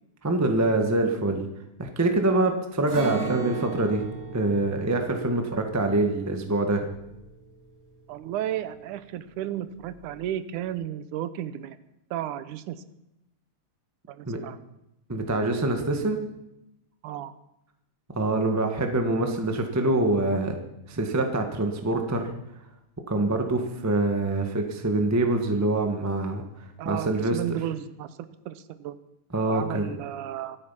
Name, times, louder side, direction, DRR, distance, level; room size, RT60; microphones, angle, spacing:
voice 1, 0.2-1.4 1.8-4.1 4.3-6.9 14.2-14.4 15.1-16.2 18.1-20.6 20.9-22.3 23.1-26.4 26.8-27.4 29.3-29.9, right 2 dB, 25° right, 4 dB, 0.3 m, -25 dB
Acoustic guitar, 2.9-8.8 9.1-9.3 9.7-10.2, right 3 dB, 40° right, 7.2 m, -38 dB
voice 2, 8.1-11.8 12.1-12.8 14.1-14.6 17.0-17.3 26.8-29.0 29.5-30.6, right 12 dB, 80° right, 13 dB, 2.2 m, -33 dB
24.5 x 8.8 x 5.8 m, 0.87 s
omnidirectional pair, 3.6 m